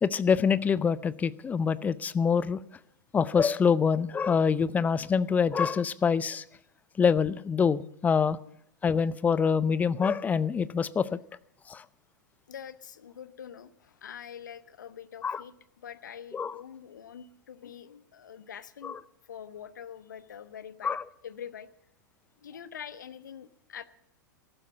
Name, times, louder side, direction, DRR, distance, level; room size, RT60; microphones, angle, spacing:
voice 1, 0.0-2.6 3.1-6.4 7.0-8.4 8.8-11.2 11.7-11.8 15.2-15.4 16.3-16.5 18.8-19.0 20.8-21.0, left 6 dB, 15° left, 18 dB, 0.5 m, -25 dB
voice 2, 12.5-19.0 19.2-21.0 21.2-21.7 22.4-23.8, left 8 dB, 65° left, 13 dB, 1.0 m, -45 dB
14.5 x 12.0 x 7.1 m, 0.74 s
figure-of-eight pair, 95°, 11 cm